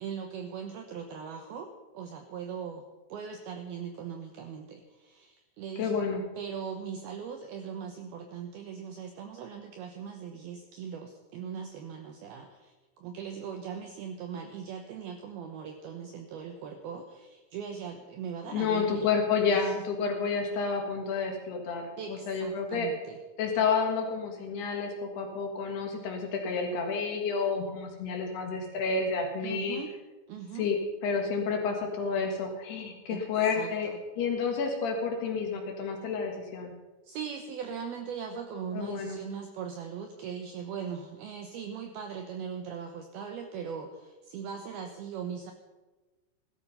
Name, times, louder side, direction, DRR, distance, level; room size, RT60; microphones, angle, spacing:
voice 1, 0.0-2.8 3.1-6.0 6.4-19.1 19.6-19.7 22.0-23.2 29.4-29.9 30.3-30.7 33.1-33.2 33.6-34.0 37.0-45.5, right 7 dB, 75° right, 5 dB, 2.4 m, -40 dB
voice 2, 5.8-6.2 18.5-22.9 23.4-29.8 30.6-33.9 34.2-36.7 38.7-39.2, left 5 dB, 65° left, 2 dB, 3.5 m, -30 dB
16.5 x 12.5 x 5.5 m, 1.2 s
omnidirectional pair, 5.4 m